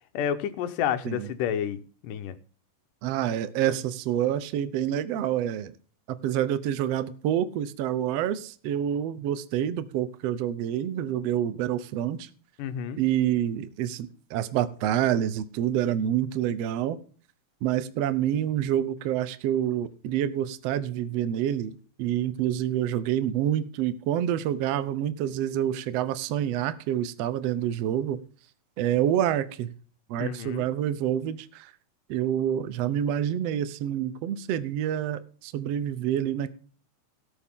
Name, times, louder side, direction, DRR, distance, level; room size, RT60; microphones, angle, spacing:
voice 1, 0.1-2.4 12.6-13.0 30.2-30.7, left 9 dB, 90° left, 10 dB, 2.5 m, -30 dB
voice 2, 3.0-5.7 6.1-12.3 13.0-17.0 17.6-21.7 22.0-28.2 28.8-29.7 30.1-31.7 32.1-36.5, right 10 dB, 75° right, 13 dB, 1.5 m, -27 dB
17.5 x 6.9 x 3.7 m, 0.42 s
omnidirectional pair, 3.7 m